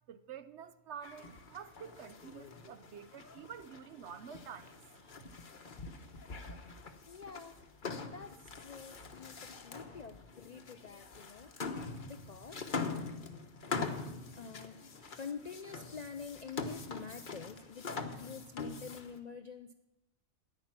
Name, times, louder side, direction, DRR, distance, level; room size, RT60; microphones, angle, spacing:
voice 1, 0.1-5.3, right 8 dB, 60° right, 0.8 m, -49 dB
sound 1, 1.0-19.2, left 4 dB, 40° left, 1.0 m, -44 dB
voice 2, 7.1-7.6 8.0-11.5 12.0-12.6 14.4-19.7, left 6 dB, 80° left, 0.3 m, -47 dB
13.5 x 10.0 x 5.9 m
omnidirectional pair, 1.4 m